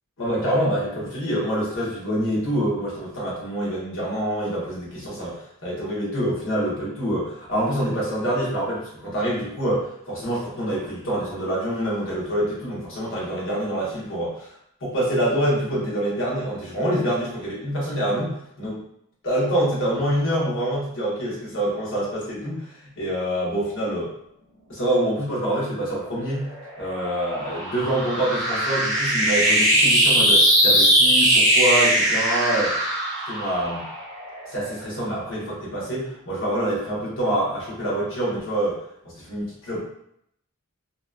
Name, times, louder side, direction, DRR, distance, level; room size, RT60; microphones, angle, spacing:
voice 1, 0.2-14.5 14.8-18.3 18.6-18.8 19.2-24.1 24.7-26.5 26.8-32.7 33.3-33.8 34.5-38.8 39.2-39.8, right 1 dB, 55° left, -6 dB, 1.0 m, -26 dB
sound 1, 26.3-35.0, right 1 dB, 15° left, 1.0 m, -20 dB
2.7 x 2.2 x 2.3 m, 0.74 s
head